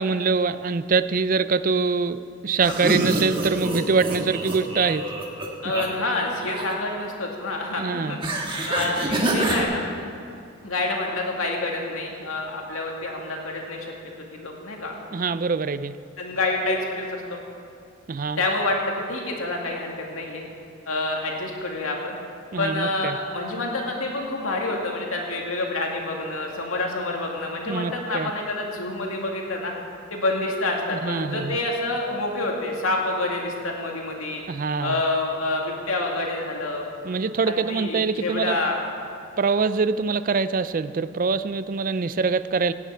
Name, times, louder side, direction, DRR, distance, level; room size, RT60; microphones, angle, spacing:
voice 1, 0.0-5.1 7.8-8.2 15.1-16.0 18.1-18.4 22.5-23.2 27.7-28.3 30.9-31.6 34.5-35.0 37.0-38.6 39.4-42.7, right 4 dB, 40° right, 13 dB, 0.4 m, -24 dB
voice 2, 2.6-3.1 5.6-8.2 8.6-9.8 10.6-14.9 16.2-17.4 18.4-20.4 20.9-22.2 22.6-29.7 30.1-34.4 34.8-36.9 37.5-38.8, left 2 dB, 90° left, 0 dB, 2.3 m, -28 dB
sound 1, 2.6-5.9 6.2-6.7 8.2-9.6, right 1 dB, 25° right, 1.6 m, -26 dB
17.0 x 6.8 x 8.7 m, 2.5 s
head